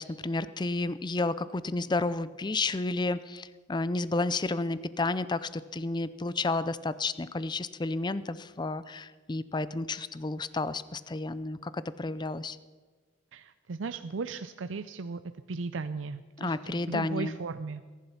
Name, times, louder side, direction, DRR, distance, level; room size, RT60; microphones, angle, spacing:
voice 1, 0.0-12.6 16.4-17.4, left 3 dB, 25° left, 15 dB, 0.5 m, -31 dB
voice 2, 13.3-15.2 15.5-17.9, right 4 dB, 80° right, 10 dB, 0.5 m, -36 dB
21.0 x 11.0 x 5.7 m, 1.4 s
head